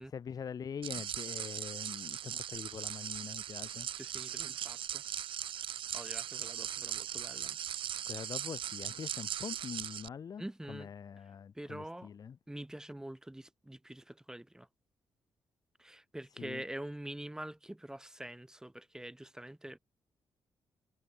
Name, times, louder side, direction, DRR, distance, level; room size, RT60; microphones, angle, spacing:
voice 1, 0.1-3.9 8.1-12.4 16.4-16.6, left 7 dB, 45° left, 0.5 m, -44 dB
sound 1, 0.8-10.1, right 10 dB, 75° right, 0.7 m, -39 dB
voice 2, 4.0-5.0 5.9-7.6 10.4-10.9 11.5-12.1 12.5-14.7 15.8-19.8, right 1 dB, 5° right, 0.6 m, -45 dB
cardioid pair, 110°, 9 cm